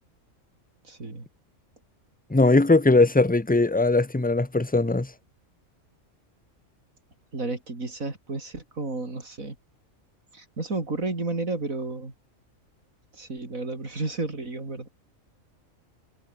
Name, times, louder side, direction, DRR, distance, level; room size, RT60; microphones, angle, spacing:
voice 1, 0.9-1.3 7.3-9.6 10.3-12.1 13.1-14.9, right 3 dB, 80° right, 4.7 m, -32 dB
voice 2, 2.3-5.1, left 2 dB, 10° left, 0.7 m, -20 dB
omnidirectional pair, 1.4 m